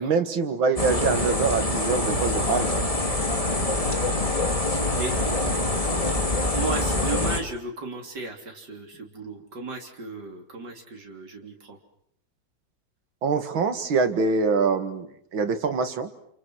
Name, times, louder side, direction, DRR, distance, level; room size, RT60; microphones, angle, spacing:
voice 1, 0.0-2.7 13.2-16.1, right 4 dB, 90° right, 9 dB, 2.6 m, -24 dB
sound 1, 0.8-7.4, left 2 dB, 15° left, 2.4 m, -25 dB
voice 2, 6.5-11.8, right 3 dB, 60° right, 2 dB, 4.1 m, -35 dB
29.0 x 29.0 x 6.3 m, 0.68 s
omnidirectional pair, 2.1 m